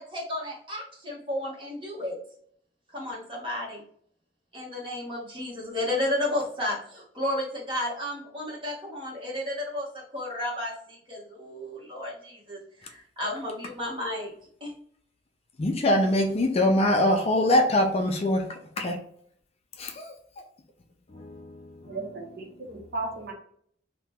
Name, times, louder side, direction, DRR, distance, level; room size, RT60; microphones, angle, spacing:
voice 1, 0.0-2.1 2.9-3.8 4.5-9.9 10.1-14.3 14.6-14.7, left 1 dB, 30° right, 1.1 m, -32 dB
voice 2, 15.6-19.0 19.8-20.1 21.1-22.3, left 1 dB, 35° left, 0.4 m, -24 dB
voice 3, 21.9-23.3, right 3 dB, 55° right, 0.7 m, -35 dB
2.9 x 2.2 x 3.5 m
head